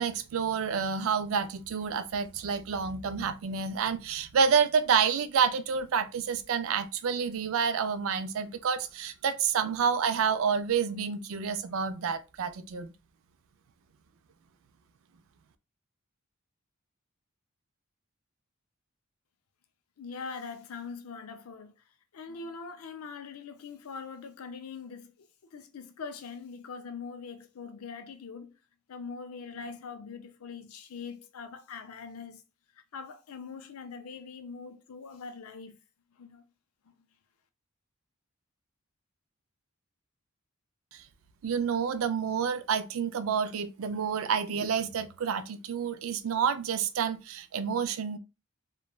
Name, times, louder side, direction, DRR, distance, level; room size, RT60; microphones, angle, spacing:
voice 1, 0.0-12.9 40.9-41.0 41.4-48.2, right 6 dB, 70° right, 0.4 m, -29 dB
voice 2, 20.0-21.7 22.1-28.5 28.9-32.4 32.7-35.8 36.2-36.5, left 5 dB, 85° left, 0.5 m, -42 dB
3.0 x 2.1 x 2.2 m
head